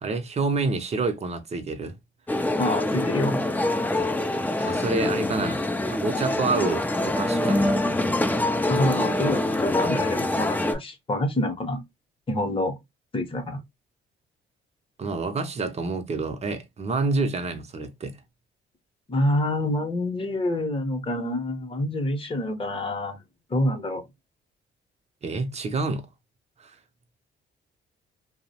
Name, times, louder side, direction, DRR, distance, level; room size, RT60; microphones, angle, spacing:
voice 1, 0.0-2.0 4.6-7.8 15.0-18.2 25.2-26.0 26.6-26.7, right 3 dB, 35° right, 0.6 m, -28 dB
sound 1, 2.3-10.7, left 1 dB, 10° left, 0.4 m, -25 dB
voice 2, 2.6-3.4 8.7-11.8 12.3-12.7 13.1-13.6 19.1-23.2 23.5-24.1, left 1 dB, 25° left, 0.8 m, -27 dB
2.7 x 2.0 x 2.7 m
cardioid pair, 90°, 20 cm